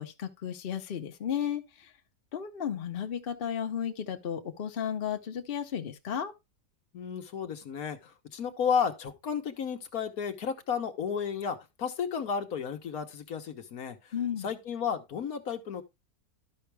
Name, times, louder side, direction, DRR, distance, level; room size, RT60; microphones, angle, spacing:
voice 1, 0.0-1.9 2.3-6.3 14.1-14.5, left 8 dB, 40° left, 1.0 m, -34 dB
voice 2, 6.9-14.1 14.4-15.8, left 7 dB, 65° left, 1.4 m, -33 dB
12.0 x 5.7 x 3.4 m
omnidirectional pair, 1.7 m